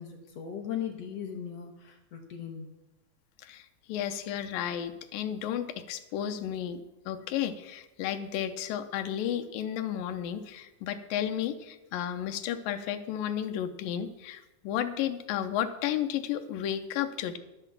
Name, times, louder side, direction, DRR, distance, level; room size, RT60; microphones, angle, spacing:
voice 1, 0.0-2.7, left 8 dB, 65° left, 3 dB, 1.7 m, -38 dB
voice 2, 3.9-17.4, left 10 dB, 80° left, 7 dB, 2.4 m, -33 dB
11.0 x 8.0 x 7.3 m, 0.99 s
omnidirectional pair, 4.1 m